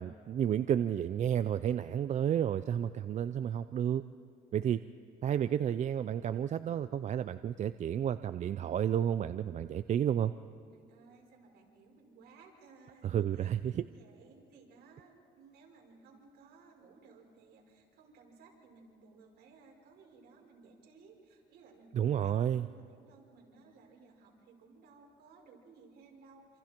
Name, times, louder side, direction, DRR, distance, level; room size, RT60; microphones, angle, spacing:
voice 1, 0.0-4.0 4.5-4.8 5.2-10.3 13.0-13.8 21.9-22.7, right 9 dB, 45° right, 12 dB, 0.5 m, -31 dB
voice 2, 10.7-26.6, right 4 dB, 70° right, -1 dB, 5.3 m, -59 dB
27.5 x 27.0 x 4.5 m, 2.4 s
cardioid pair, 110°, 17 cm